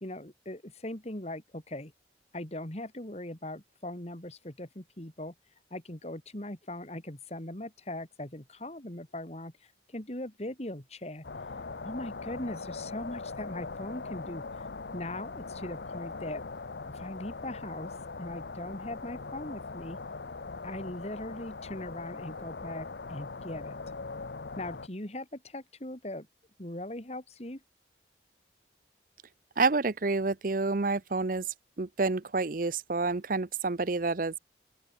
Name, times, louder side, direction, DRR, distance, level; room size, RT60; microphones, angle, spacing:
voice 1, 0.0-1.9 2.3-5.3 5.7-11.2 11.8-14.5 14.9-16.5 16.9-17.9 18.2-20.0 20.6-23.8 24.6-26.3 26.6-27.6, left 1 dB, 35° left, 2.7 m, -40 dB
sound 1, 11.2-24.9, left 4 dB, 70° left, 0.8 m, -41 dB
voice 2, 29.6-31.5 31.8-34.4, right 3 dB, 50° right, 0.7 m, -28 dB
open air
head